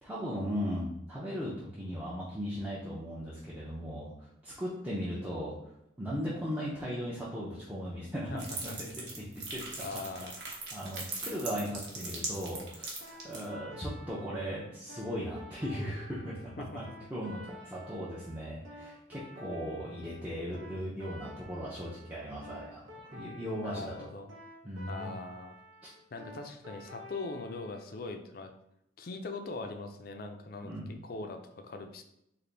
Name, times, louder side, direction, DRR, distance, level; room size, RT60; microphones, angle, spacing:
voice 1, 0.0-5.7 6.0-9.9 10.4-16.8 17.1-22.8 23.1-24.0 24.6-25.1 30.6-30.9, equal, 10° right, -8 dB, 0.5 m, -38 dB
sound 1, 8.4-13.4, right 3 dB, 60° right, 1.0 m, -40 dB
voice 2, 9.8-10.3 16.6-16.8 23.6-24.3 24.9-25.6 26.1-28.5 29.0-30.7 31.0-32.0, left 3 dB, 50° left, 6 dB, 0.4 m, -41 dB
sound 2, 13.0-27.8, left 1 dB, 85° right, 1.0 m, -50 dB
3.3 x 2.5 x 3.8 m, 0.79 s
head